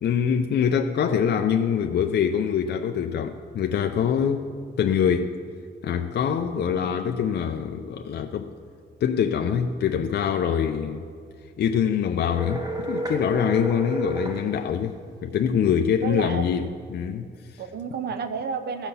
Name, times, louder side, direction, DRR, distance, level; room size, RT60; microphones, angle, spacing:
voice 1, 0.0-4.5 4.8-5.3 5.8-8.5 9.0-11.0 11.6-17.6, left 7 dB, 60° left, 5 dB, 0.5 m, -24 dB
sound 1, 12.3-14.4, right 1 dB, 20° right, 1.5 m, -30 dB
voice 2, 16.0-16.6 17.6-18.9, right 6 dB, 60° right, 9 dB, 0.8 m, -31 dB
15.0 x 5.8 x 6.9 m, 2.2 s
wide cardioid pair, 135°, 19 cm